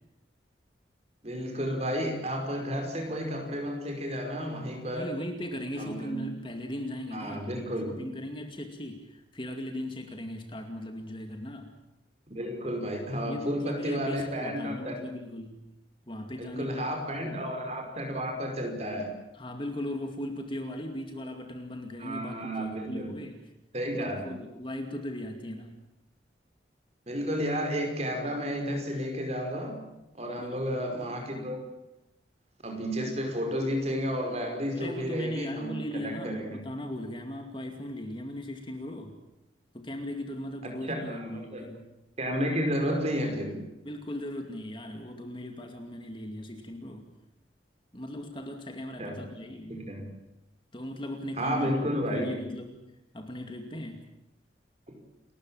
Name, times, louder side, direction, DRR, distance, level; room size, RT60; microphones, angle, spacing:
voice 1, 1.2-5.1 5.8-6.2 7.1-8.0 12.3-15.0 16.4-19.1 22.0-23.1 23.7-24.3 27.1-29.8 30.1-31.6 32.6-36.6 40.6-41.7 42.2-43.6 49.0-49.2 49.7-50.1 51.4-52.5 54.9-55.0, equal, 35° right, 3 dB, 5.4 m, -32 dB
voice 2, 4.9-7.7 8.0-11.7 13.3-15.6 16.1-16.9 17.2-17.4 19.3-23.4 23.9-25.8 30.4-30.8 34.7-39.2 39.7-41.9 43.8-47.1 47.9-49.8 50.7-51.7 52.0-52.8 53.1-54.1, left 1 dB, 25° left, 5 dB, 2.4 m, -38 dB
29.5 x 14.0 x 8.9 m, 0.91 s
head